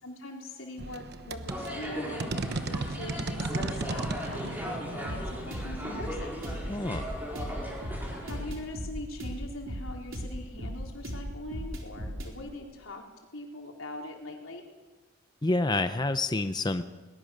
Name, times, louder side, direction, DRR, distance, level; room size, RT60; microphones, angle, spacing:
voice 1, 0.0-4.4 4.6-6.3 8.2-13.0 13.3-14.6, left 1 dB, 85° left, 1 dB, 4.1 m, -42 dB
sound 1, 0.8-7.2, right 2 dB, 55° right, 1.1 m, -36 dB
sound 2, 1.5-8.5, equal, 10° right, 5.3 m, -38 dB
sound 3, 5.0-12.3, equal, 75° right, 4.3 m, -37 dB
voice 2, 6.7-7.1 15.4-16.8, left 2 dB, 20° left, 10 dB, 0.6 m, -28 dB
21.5 x 20.0 x 6.6 m, 1.2 s
head